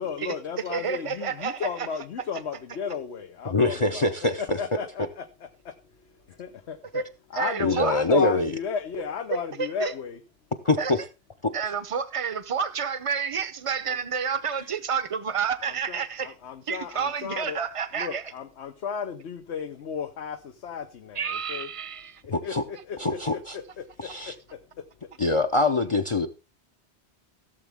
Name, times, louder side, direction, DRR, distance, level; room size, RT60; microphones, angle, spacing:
voice 1, 0.0-5.2 5.6-5.7 6.4-7.0 7.3-10.2 13.9-14.0 15.6-17.6 17.9-21.7 22.4-23.8, left 6 dB, 85° left, 1.2 m, -34 dB
voice 2, 0.7-1.9 6.9-7.0 7.3-8.0 9.6-9.9 10.8-10.9 11.5-16.3 16.7-18.2 21.1-22.2, right 6 dB, 35° right, 0.8 m, -29 dB
voice 3, 3.4-4.6 7.6-8.5 10.6-11.0 22.3-22.6 23.0-23.6 24.0-24.3 25.2-26.3, left 2 dB, 35° left, 0.7 m, -24 dB
16.5 x 7.2 x 3.5 m
omnidirectional pair, 1.1 m